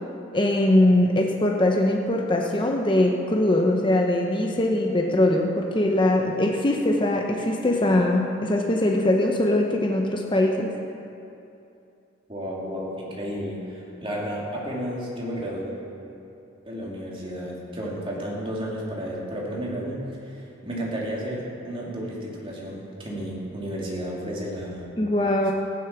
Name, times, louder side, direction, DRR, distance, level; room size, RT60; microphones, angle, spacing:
voice 1, 0.3-10.7 25.0-25.5, left 1 dB, 25° left, 1 dB, 0.8 m, -21 dB
voice 2, 12.3-15.8 16.7-24.9, equal, 25° right, -4 dB, 2.6 m, -32 dB
15.0 x 10.5 x 5.9 m, 2.7 s
head